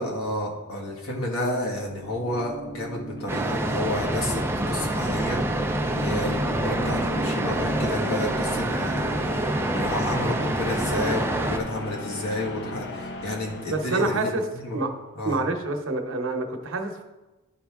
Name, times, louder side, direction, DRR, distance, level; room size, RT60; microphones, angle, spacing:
voice 1, 0.0-15.4, left 1 dB, 80° left, -1 dB, 1.6 m, -31 dB
sound 1, 1.7-14.5, left 1 dB, 55° left, 0.8 m, -36 dB
sound 2, 3.3-11.6, right 1 dB, 10° right, 0.4 m, -27 dB
voice 2, 13.7-14.4 14.7-14.9 15.2-17.0, right 2 dB, 65° right, 4 dB, 0.9 m, -27 dB
11.5 x 4.4 x 3.6 m, 1.1 s
head